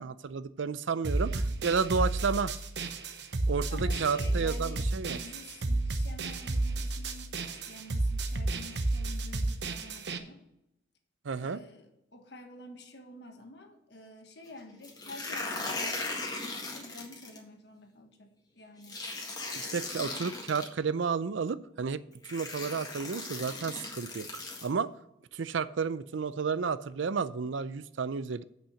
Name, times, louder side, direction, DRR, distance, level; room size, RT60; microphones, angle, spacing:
voice 1, 0.0-2.5 3.5-5.2 11.2-11.6 19.5-22.0 22.3-24.9 25.3-28.4, right 5 dB, 85° right, 15 dB, 0.5 m, -32 dB
sound 1, 1.0-10.2, right 2 dB, 65° right, 0.9 m, -32 dB
voice 2, 3.7-10.4 11.3-16.0 16.4-19.1, left 2 dB, 60° left, 4 dB, 1.4 m, -49 dB
sound 2, 14.8-17.4 18.8-20.7 21.7-21.8 22.2-24.7, left 3 dB, 20° left, 1.7 m, -38 dB
8.5 x 6.1 x 6.3 m, 0.83 s
head